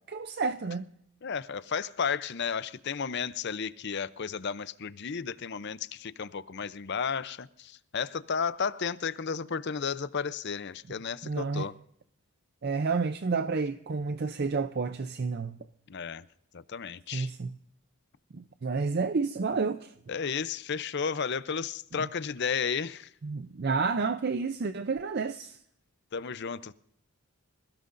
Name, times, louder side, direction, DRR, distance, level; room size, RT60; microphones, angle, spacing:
voice 1, 0.1-0.9 11.2-11.7 12.6-15.6 17.1-17.5 18.3-19.9 22.0-22.1 23.2-25.6, right 4 dB, 45° right, 0.5 m, -30 dB
voice 2, 1.2-11.8 15.9-16.2 16.5-17.3 20.1-23.1 26.1-26.7, left 6 dB, 50° left, 0.6 m, -33 dB
26.5 x 16.5 x 2.6 m
head